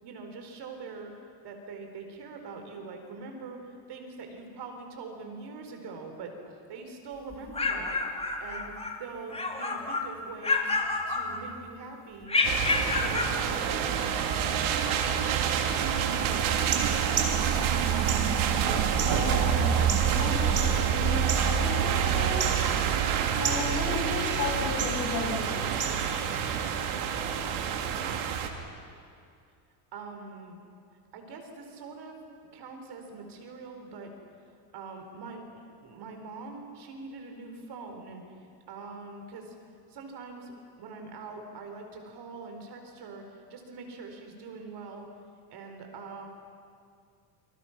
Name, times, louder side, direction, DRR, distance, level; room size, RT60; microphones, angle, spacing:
voice 1, 0.0-1.1 1.4-6.3 6.7-8.0 8.4-8.7 9.0-10.7 11.1-12.4 12.9-14.7 29.9-30.6 31.1-32.2 32.5-34.1 34.7-39.5 39.9-45.1 45.5-46.3, right 4 dB, 50° right, 4 dB, 4.7 m, -43 dB
sound 1, 7.3-9.0 9.3-10.1 10.4-11.7 12.3-13.4, left 3 dB, 10° left, 2.8 m, -29 dB
sound 2, 12.4-28.5, right 8 dB, 70° right, 2.9 m, -27 dB
sound 3, 16.6-26.6, right 6 dB, 35° right, 3.9 m, -37 dB
voice 2, 18.7-22.6 23.3-25.9, left 3 dB, 40° left, 0 dB, 7.4 m, -35 dB
29.0 x 26.0 x 6.1 m, 2.4 s
cardioid pair, 125°, 50 cm